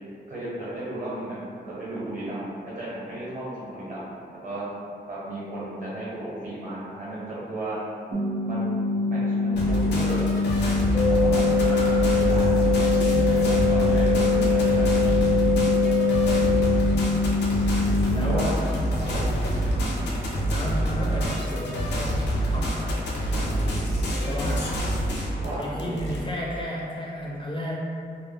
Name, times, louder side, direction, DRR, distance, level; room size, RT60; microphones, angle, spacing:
voice 1, 0.3-4.2 4.4-4.6 5.1-7.8 8.4-8.8 9.0-10.2 11.1-11.7 12.0-14.9 18.2-18.5 19.0-19.2 25.4-25.9, right 1 dB, 50° right, -9 dB, 1.0 m, -34 dB
sound 1, 8.1-18.1, left 3 dB, 65° right, 0.6 m, -25 dB
sound 2, 9.5-26.2, right 1 dB, 90° left, 0.5 m, -26 dB
sound 3, 10.9-16.9, left 3 dB, 30° right, 0.7 m, -24 dB
voice 2, 11.6-12.1 18.1-18.6 19.1-19.3 19.7-20.1 20.5-23.6 24.2-24.8 25.5-27.7, left 1 dB, 30° left, -4 dB, 0.4 m, -34 dB
2.1 x 2.0 x 3.3 m, 2.4 s
wide cardioid pair, 100°, 17 cm